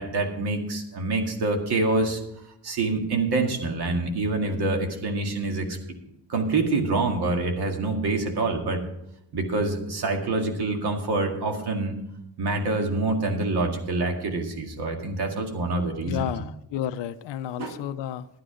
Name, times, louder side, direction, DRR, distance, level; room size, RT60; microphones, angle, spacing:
voice 1, 0.0-2.2 2.6-5.8 6.3-8.8 9.3-12.0 12.4-16.3 17.6-17.8, right 3 dB, 50° right, 3 dB, 2.2 m, -26 dB
voice 2, 16.0-18.3, left 10 dB, 60° left, 10 dB, 0.6 m, -31 dB
12.5 x 9.8 x 5.0 m, 0.81 s
cardioid pair, 170°, 50 cm